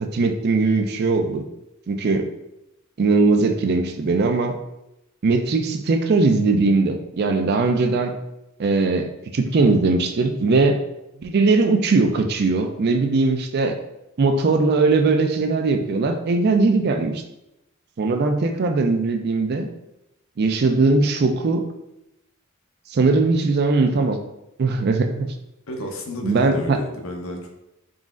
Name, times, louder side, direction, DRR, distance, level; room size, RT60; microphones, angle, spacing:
voice 1, 0.0-1.4 1.9-2.3 3.0-4.5 5.2-8.1 8.6-10.8 11.2-13.8 14.2-17.2 18.0-19.7 20.4-21.6 22.9-24.2 24.6-25.3 26.2-26.8, right 3 dB, 50° right, 6 dB, 0.4 m, -20 dB
voice 2, 25.7-27.5, left 1 dB, 70° left, 2 dB, 0.7 m, -31 dB
4.1 x 3.8 x 2.4 m, 0.89 s
head